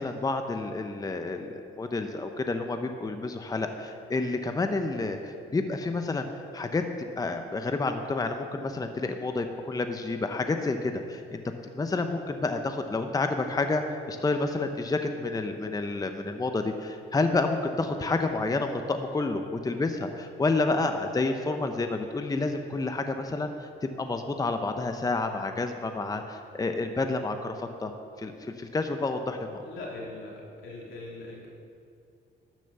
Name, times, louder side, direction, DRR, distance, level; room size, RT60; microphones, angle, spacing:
voice 1, 0.0-6.3 6.5-6.8 7.2-11.4 11.7-27.9 28.2-29.6, left 3 dB, 20° left, 6 dB, 0.7 m, -29 dB
voice 2, 29.6-31.5, left 2 dB, 80° left, -3 dB, 3.0 m, -41 dB
12.5 x 6.1 x 6.9 m, 2.5 s
cardioid pair, 90°, 20 cm